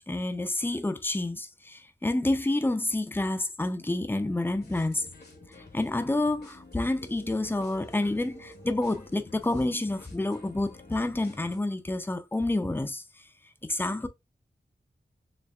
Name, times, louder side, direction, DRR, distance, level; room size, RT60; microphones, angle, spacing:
voice 1, 0.0-5.1 5.6-13.3 13.6-14.1, left 2 dB, 10° left, 0.5 m, -29 dB
sound 1, 4.5-11.6, left 2 dB, 65° left, 1.0 m, -50 dB
4.1 x 3.2 x 2.3 m
wide cardioid pair, 90°, 18 cm